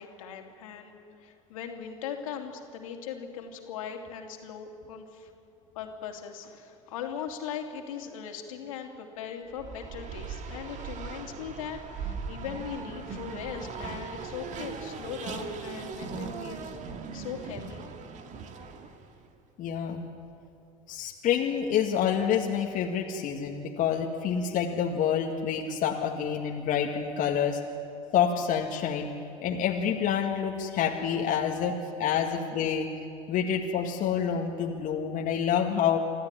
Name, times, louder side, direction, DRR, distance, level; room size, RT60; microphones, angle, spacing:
voice 1, 0.0-5.3 5.7-16.7 17.1-17.9, left 7 dB, 75° left, 2 dB, 2.9 m, -39 dB
Race car auto racing, 9.5-19.2, right 5 dB, 45° right, 2.1 m, -39 dB
voice 2, 19.6-20.0 20.9-27.6 28.1-29.1 29.4-32.9 33.3-36.0, left 8 dB, 50° left, 1 dB, 1.9 m, -27 dB
26.0 x 14.0 x 9.9 m, 2.6 s
hypercardioid pair, 75°, 17 cm